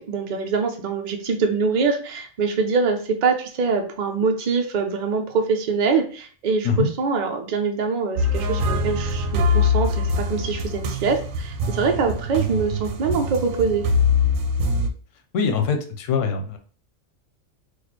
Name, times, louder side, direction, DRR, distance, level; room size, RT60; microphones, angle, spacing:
voice 1, 0.1-13.8, right 5 dB, 50° right, 4 dB, 0.6 m, -24 dB
sound 1, 8.2-14.9, left 3 dB, 80° right, 1.0 m, -23 dB
voice 2, 15.3-16.6, left 5 dB, 70° left, 5 dB, 1.0 m, -23 dB
3.0 x 2.5 x 4.0 m, 0.42 s
omnidirectional pair, 1.4 m